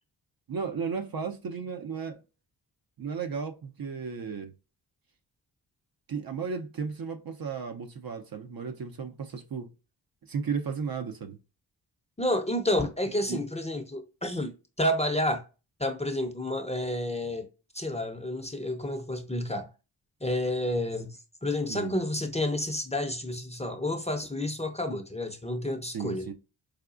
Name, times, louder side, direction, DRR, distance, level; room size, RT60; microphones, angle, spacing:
voice 1, 0.5-2.2 3.0-4.5 6.1-9.7 10.3-11.4 13.3-13.4 21.7-21.9 25.9-26.3, right 6 dB, 45° right, 0.6 m, -34 dB
voice 2, 12.2-15.4 15.8-17.5 17.7-19.7 20.2-26.3, left 1 dB, 15° left, 0.6 m, -30 dB
4.9 x 2.3 x 2.4 m
cardioid pair, 50°, 49 cm